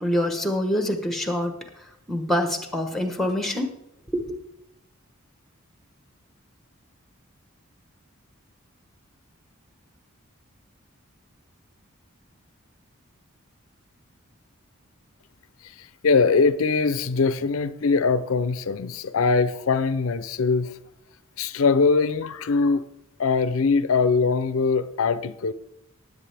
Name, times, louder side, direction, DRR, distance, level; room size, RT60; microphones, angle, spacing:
voice 1, 0.0-3.7 4.1-4.4, left 1 dB, ahead, 1.0 m, -26 dB
voice 2, 15.8-20.7 21.4-22.8 23.2-25.5, left 4 dB, 80° left, 0.5 m, -22 dB
19.0 x 8.1 x 3.4 m
head